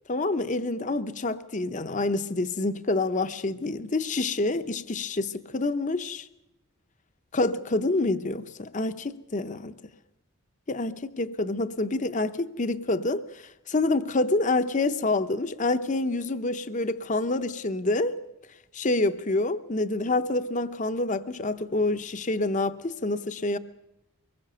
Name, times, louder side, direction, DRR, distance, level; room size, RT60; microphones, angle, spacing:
voice 1, 0.1-6.3 7.3-9.7 10.7-18.2 18.7-23.6, left 2 dB, 35° left, 0.7 m, -27 dB
24.0 x 20.5 x 6.8 m
head